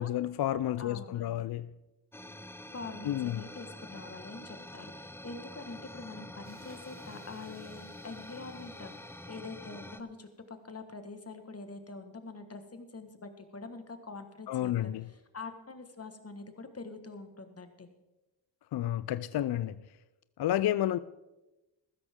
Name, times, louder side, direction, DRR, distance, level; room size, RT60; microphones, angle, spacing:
voice 1, 0.0-1.7 3.0-3.4 14.5-15.1 18.7-19.8 20.4-21.0, left 12 dB, 55° left, 0.5 m, -31 dB
voice 2, 0.8-1.5 2.7-8.9 9.3-14.9 15.3-17.9, left 3 dB, 30° left, 1.6 m, -45 dB
sound 1, 2.1-10.0, left 1 dB, 5° left, 0.6 m, -47 dB
sound 2, 6.4-10.5, right 2 dB, 20° right, 2.6 m, -62 dB
15.0 x 13.0 x 3.7 m
cardioid pair, 65°, 46 cm